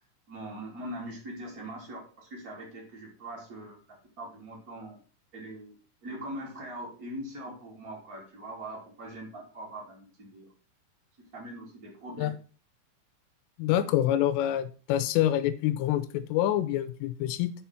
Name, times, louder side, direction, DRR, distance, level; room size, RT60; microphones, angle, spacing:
voice 1, 0.3-5.0 5.3-10.5 11.3-12.3, right 1 dB, 25° right, 2.6 m, -42 dB
voice 2, 13.6-17.5, left 12 dB, 90° left, 3.2 m, -26 dB
6.9 x 5.7 x 5.8 m
omnidirectional pair, 5.7 m